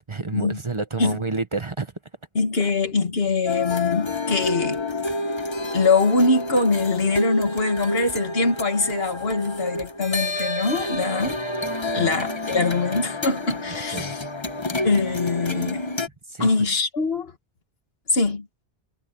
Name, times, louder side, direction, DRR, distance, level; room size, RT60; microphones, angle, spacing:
voice 1, 0.0-1.9 12.0-12.1 13.9-14.1 16.3-16.5, right 3 dB, 30° right, 0.9 m, -29 dB
voice 2, 2.4-4.8 5.7-11.4 11.9-14.2 14.8-15.8 16.4-17.3 18.1-18.5, left 3 dB, 65° left, 2.1 m, -23 dB
sound 1, 3.5-16.1, left 1 dB, 25° left, 1.2 m, -28 dB
omnidirectional pair, 1.1 m